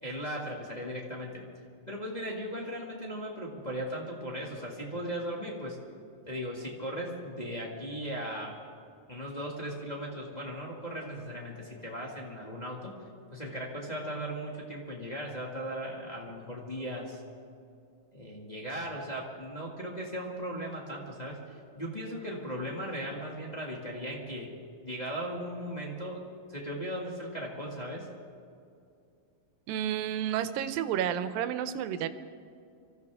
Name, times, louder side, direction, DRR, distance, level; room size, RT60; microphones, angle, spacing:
voice 1, 0.0-1.4 1.9-5.8 6.3-8.6 9.1-12.9 13.3-17.2 18.1-24.5 24.8-26.2 26.5-28.1, equal, 20° left, -3 dB, 1.2 m, -37 dB
voice 2, 29.7-32.1, right 10 dB, 85° right, 11 dB, 2.4 m, -31 dB
24.5 x 15.0 x 3.6 m, 2.5 s
omnidirectional pair, 4.0 m